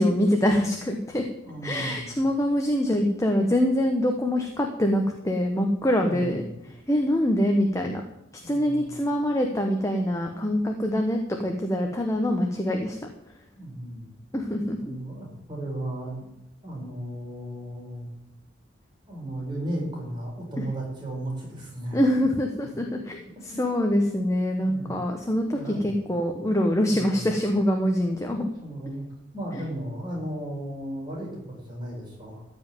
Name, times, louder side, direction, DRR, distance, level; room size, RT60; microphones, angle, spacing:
voice 1, 0.0-1.2 1.6-6.4 6.9-8.0 8.5-13.0 14.3-15.0 21.9-23.2 23.4-28.4, equal, 15° left, 2 dB, 1.1 m, -24 dB
voice 2, 1.4-2.1 6.0-6.5 8.4-9.0 13.6-14.1 14.8-16.1 16.6-18.1 19.1-22.0 22.6-22.7 23.5-23.6 24.6-25.0 25.5-25.9 26.8-27.3 28.4-29.1 29.3-32.4, right 1 dB, 25° right, -3 dB, 4.8 m, -35 dB
14.5 x 5.4 x 9.2 m, 0.90 s
head